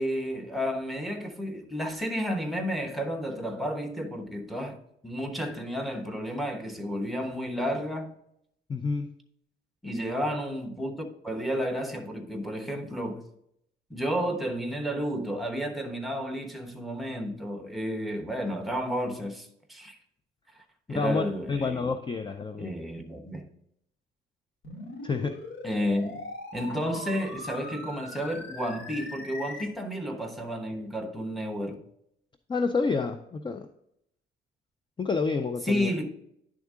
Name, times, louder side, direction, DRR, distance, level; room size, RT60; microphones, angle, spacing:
voice 1, 0.0-8.1 9.8-13.3 13.9-20.0 20.9-21.9 22.6-23.4 25.6-26.1 26.5-31.8 35.6-36.1, equal, ahead, 1.0 m, -31 dB
voice 2, 8.7-9.1 20.9-22.8 25.0-25.4 32.5-33.7 35.0-35.9, left 4 dB, 25° left, 0.4 m, -29 dB
sound 1, 24.6-29.7, left 2 dB, 80° left, 1.7 m, -41 dB
10.5 x 3.6 x 3.7 m
cardioid pair, 90°, 20 cm